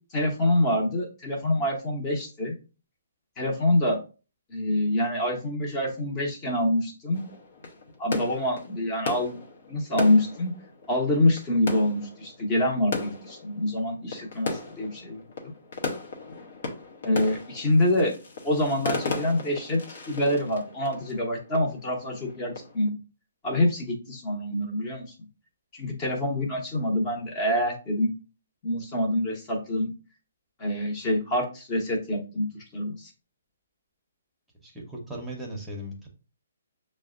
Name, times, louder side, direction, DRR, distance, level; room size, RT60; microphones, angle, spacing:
voice 1, 0.1-2.5 3.4-4.0 4.5-7.2 8.0-9.4 9.7-10.5 10.9-15.2 17.0-18.1 18.4-19.8 20.1-23.0 23.4-25.1 25.7-28.1 28.6-29.9 30.6-32.4 32.7-33.1, left 1 dB, 25° left, 0 dB, 0.9 m, -26 dB
sound 1, 7.1-22.9, left 3 dB, 65° left, 0.8 m, -37 dB
voice 2, 34.6-36.1, equal, 10° right, -1 dB, 0.8 m, -37 dB
6.1 x 2.1 x 2.4 m, 0.34 s
hypercardioid pair, 140°, 0 cm